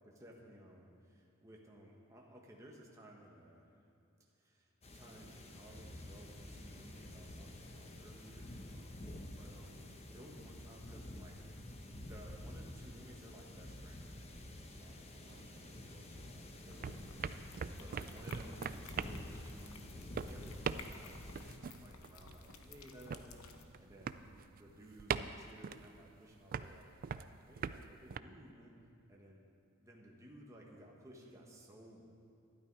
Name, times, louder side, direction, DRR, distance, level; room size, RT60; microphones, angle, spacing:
voice 1, 0.0-3.8 4.2-11.4 12.0-24.2 24.5-26.8 27.1-28.7 29.1-29.5 29.8-32.1, right 1 dB, 15° right, -2 dB, 1.4 m, -57 dB
sound 1, 4.8-21.6, left 1 dB, 30° left, 0.9 m, -50 dB
sound 2, 15.3-16.4 16.6-28.2, right 6 dB, 40° right, 0.3 m, -43 dB
sound 3, 16.7-23.6, left 3 dB, 75° left, 0.8 m, -55 dB
12.5 x 11.5 x 4.8 m, 2.6 s
head